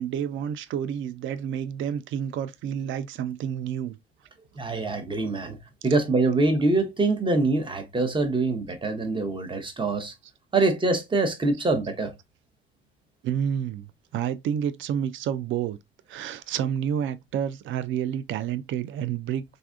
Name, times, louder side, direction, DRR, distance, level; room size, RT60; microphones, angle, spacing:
voice 1, 0.0-4.0 13.2-15.8 16.1-19.4, right 9 dB, 40° right, 0.4 m, -29 dB
voice 2, 4.6-5.6 5.8-10.1 10.5-12.1, right 3 dB, 15° right, 0.8 m, -24 dB
3.3 x 2.6 x 2.3 m
hypercardioid pair, 60°, 31 cm